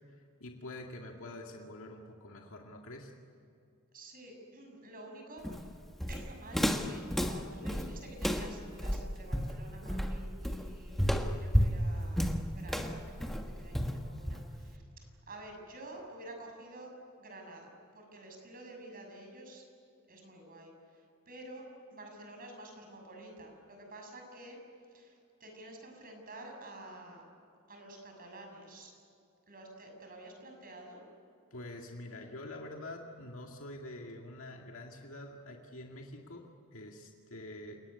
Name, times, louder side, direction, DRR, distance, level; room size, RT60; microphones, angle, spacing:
voice 1, 0.1-3.1 31.5-37.8, left 1 dB, 65° left, 1 dB, 2.2 m, -46 dB
voice 2, 3.9-5.8 6.1-11.1 11.4-16.9 17.2-19.7 20.1-21.7 21.9-24.6 24.9-27.2 27.7-28.9 29.5-31.0, right 1 dB, 40° right, 3 dB, 6.7 m, -50 dB
Walk footsteps, 5.4-14.7, equal, ahead, 1.5 m, -32 dB
29.0 x 19.0 x 9.8 m, 2.5 s
head